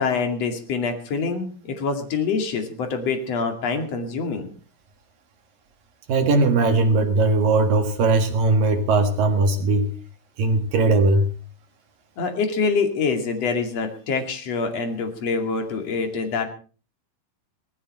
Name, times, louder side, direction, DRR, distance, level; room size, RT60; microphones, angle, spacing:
voice 1, 0.0-4.5 12.2-16.5, left 4 dB, 40° left, 5 dB, 2.7 m, -25 dB
voice 2, 6.1-9.9 10.4-11.3, right 3 dB, 60° right, 5 dB, 2.8 m, -19 dB
18.5 x 15.0 x 4.3 m, 0.38 s
omnidirectional pair, 5.6 m